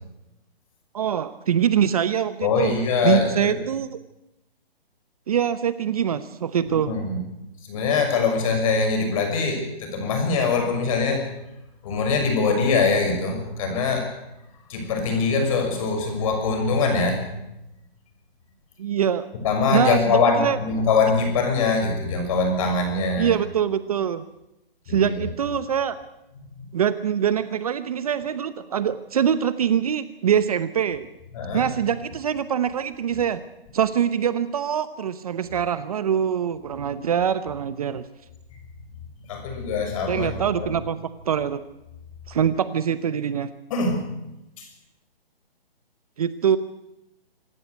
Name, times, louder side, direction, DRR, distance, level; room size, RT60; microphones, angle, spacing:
voice 1, 0.9-2.7 3.0-4.0 5.3-6.9 18.8-19.3 19.7-20.6 23.2-24.2 24.9-26.0 26.7-31.1 31.5-33.4 33.7-38.0 40.1-41.0 41.2-41.6 42.3-43.5 46.2-46.6, right 8 dB, 40° right, 13 dB, 0.9 m, -24 dB
voice 2, 2.4-3.6 6.7-7.2 7.7-11.3 11.8-14.1 14.7-17.2 19.4-23.4 24.9-25.2 31.3-31.7 38.5-38.6 39.3-40.7 43.7-44.1 44.6-44.7, left 4 dB, 35° left, 4 dB, 6.2 m, -23 dB
26.0 x 13.0 x 8.2 m, 0.91 s
hypercardioid pair, 160°, 30 cm